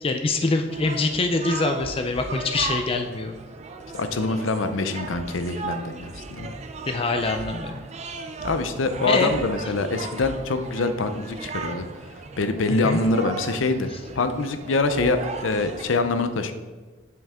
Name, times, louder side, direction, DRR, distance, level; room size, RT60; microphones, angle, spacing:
voice 1, 0.0-3.4 6.9-7.8 9.1-9.3 12.8-13.0, left 3 dB, 30° left, 6 dB, 0.4 m, -24 dB
sound 1, 0.7-15.8, right 4 dB, 35° right, 0.5 m, -36 dB
voice 2, 3.9-6.5 8.4-11.9 12.4-13.9 14.2-16.5, left 3 dB, 75° left, 9 dB, 0.6 m, -25 dB
7.6 x 5.6 x 3.6 m, 1.3 s
head